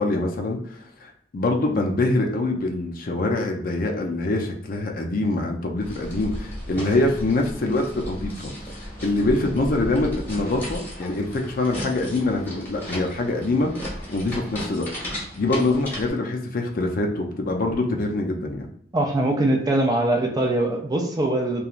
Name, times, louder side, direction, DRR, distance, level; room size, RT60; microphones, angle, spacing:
voice 1, 0.0-13.7 14.1-14.9 15.3-18.7, left 2 dB, 50° left, 3 dB, 0.4 m, -24 dB
sound 1, 5.8-16.1, equal, 10° left, 1.0 m, -35 dB
voice 2, 18.9-21.6, right 1 dB, 20° right, 2 dB, 0.4 m, -22 dB
3.0 x 2.3 x 2.4 m, 0.67 s
head